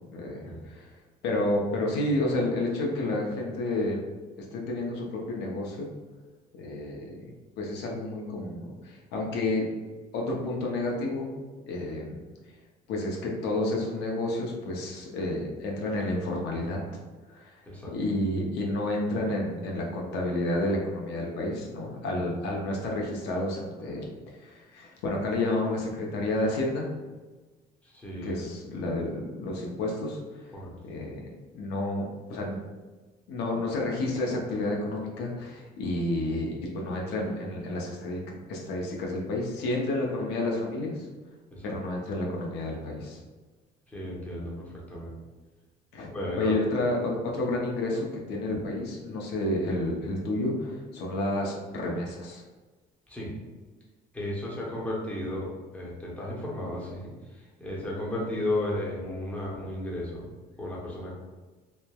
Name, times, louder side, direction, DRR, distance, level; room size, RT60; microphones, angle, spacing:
voice 1, 0.1-0.9 1.2-4.0 4.5-5.9 6.6-9.7 10.1-11.3 11.7-12.2 12.9-16.8 17.3-17.5 17.9-26.9 28.2-30.5 30.8-31.2 31.5-32.6 33.3-38.2 38.5-41.1 41.6-43.2 45.9-46.1 46.4-52.4, left 2 dB, 80° left, -1 dB, 0.6 m, -30 dB
voice 2, 27.8-28.4 30.5-30.7 41.5-41.7 43.9-45.1 46.1-46.5 53.1-53.3 54.1-57.1 57.6-60.3 60.6-61.1, left 1 dB, 10° left, -5 dB, 0.7 m, -34 dB
3.1 x 2.0 x 2.2 m, 1.3 s
cardioid pair, 110°, 17 cm